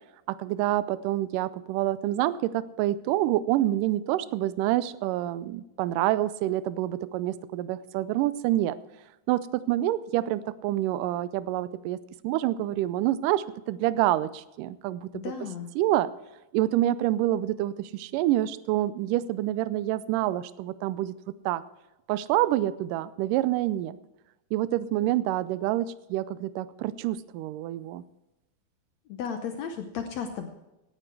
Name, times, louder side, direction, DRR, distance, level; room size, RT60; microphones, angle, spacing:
voice 1, 0.3-8.8 9.3-12.0 12.2-15.3 15.8-16.1 16.5-21.1 21.5-21.6 22.1-24.0 24.5-28.0, right 14 dB, 80° right, 16 dB, 2.0 m, -27 dB
voice 2, 15.1-15.7 29.1-30.5, left 7 dB, 75° left, 6 dB, 1.6 m, -34 dB
17.5 x 9.4 x 4.6 m, 0.97 s
omnidirectional pair, 4.1 m